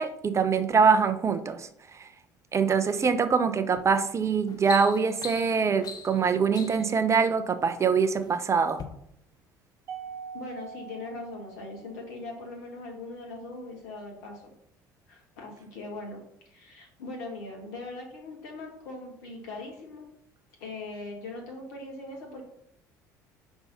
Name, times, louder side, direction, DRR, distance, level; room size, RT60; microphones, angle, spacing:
voice 1, 0.0-1.7 2.5-8.8, right 5 dB, 30° right, 10 dB, 0.6 m, -24 dB
sound 1, 3.7-4.0 4.3-7.0 7.8-8.3 8.7-8.9, left 6 dB, 40° left, 0.8 m, -41 dB
Mallet percussion, 9.9-12.3, right 6 dB, 70° right, 1.1 m, -43 dB
voice 2, 10.3-14.5 15.1-16.2 16.5-20.1 20.6-22.4, left 2 dB, 70° left, 0 dB, 1.6 m, -40 dB
5.4 x 3.5 x 5.6 m, 0.73 s
figure-of-eight pair, 55°, 10 cm